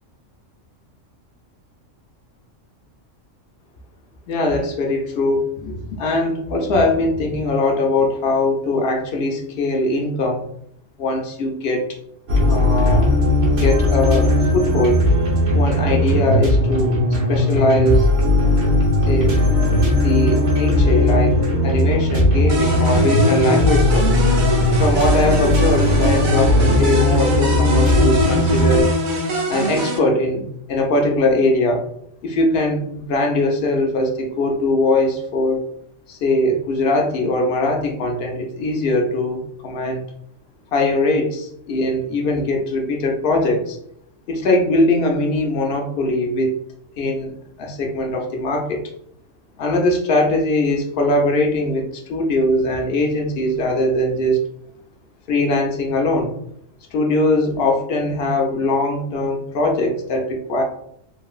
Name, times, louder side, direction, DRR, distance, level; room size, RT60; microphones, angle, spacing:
voice 1, 4.3-10.5 11.0-12.0 12.4-13.1 13.6-15.0 15.5-18.1 19.1-19.5 19.9-21.4 21.6-24.2 24.8-28.9 29.5-31.9 32.2-35.6 36.1-40.0 40.7-43.8 44.3-46.6 47.0-48.8 49.6-54.4 55.3-56.3 56.9-60.6, left 2 dB, 60° left, 2 dB, 0.7 m, -21 dB
sound 1, 12.3-28.8, left 1 dB, 65° right, 1.2 m, -17 dB
sound 2, 22.5-30.0, equal, 50° right, 0.6 m, -23 dB
3.1 x 2.7 x 2.3 m, 0.73 s
omnidirectional pair, 1.4 m